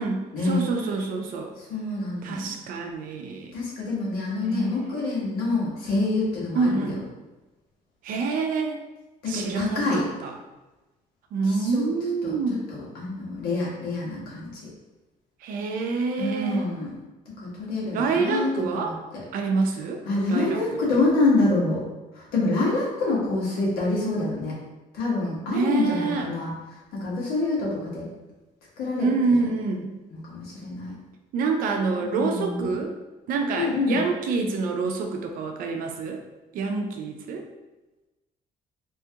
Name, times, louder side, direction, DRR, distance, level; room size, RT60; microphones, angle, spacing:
voice 1, 0.0-1.5 2.2-3.5 4.4-5.1 6.5-7.0 8.0-8.8 9.3-10.3 11.3-12.6 15.4-16.7 17.9-19.0 19.3-20.0 20.3-20.8 25.5-26.3 29.0-29.9 31.3-32.9 33.3-36.2 36.5-37.5, right 4 dB, 70° right, 3 dB, 0.5 m, -27 dB
voice 2, 1.7-2.5 3.5-6.9 9.2-10.0 11.5-11.9 12.2-12.3 12.7-14.6 16.2-16.9 17.4-18.9 20.0-21.8 22.1-24.5 24.9-26.5 26.9-28.1 28.8-29.1 30.3-30.9 32.0-32.7 33.5-34.0, left 3 dB, 85° left, -5 dB, 1.4 m, -26 dB
3.0 x 2.8 x 3.5 m, 1.1 s
cardioid pair, 110°, 15 cm